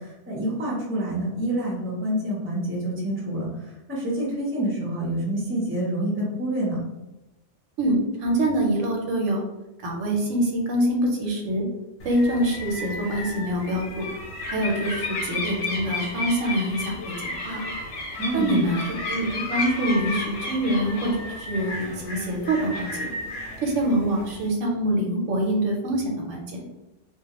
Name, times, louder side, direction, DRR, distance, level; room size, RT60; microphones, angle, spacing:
voice 1, 0.0-6.8 18.2-18.8, right 1 dB, 15° right, -5 dB, 0.5 m, -27 dB
voice 2, 7.8-9.4 9.8-11.6 12.0-14.0 14.5-17.7 18.3-23.1 23.6-26.6, right 1 dB, 85° right, 0 dB, 1.0 m, -25 dB
sound 1, 12.0-24.5, left 2 dB, 90° left, 1.0 m, -33 dB
2.2 x 2.1 x 2.8 m, 0.98 s
omnidirectional pair, 1.2 m